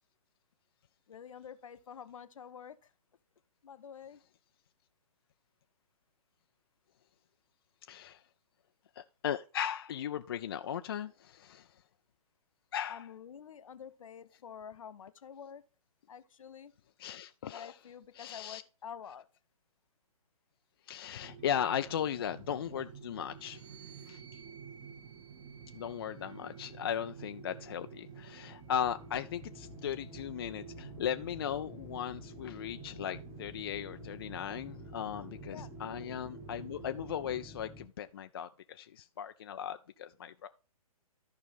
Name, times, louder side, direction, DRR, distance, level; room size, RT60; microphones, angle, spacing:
voice 1, 1.1-2.9 3.6-4.2 12.9-15.6 16.1-16.7 17.5-19.3 35.5-35.7 36.0-36.1, left 8 dB, 60° left, 0.8 m, -48 dB
voice 2, 7.9-8.2 9.0-11.7 12.7-13.1 17.0-17.7 18.1-18.6 20.9-24.2 25.7-40.5, left 9 dB, 40° left, 0.4 m, -37 dB
sound 1, 21.2-37.5, right 6 dB, 25° right, 1.1 m, -50 dB
sound 2, 23.3-26.9 27.8-29.4, right 7 dB, 50° right, 1.9 m, -60 dB
sound 3, 28.6-37.9, left 2 dB, 10° left, 0.9 m, -51 dB
13.5 x 5.2 x 3.4 m
figure-of-eight pair, 130°, 19 cm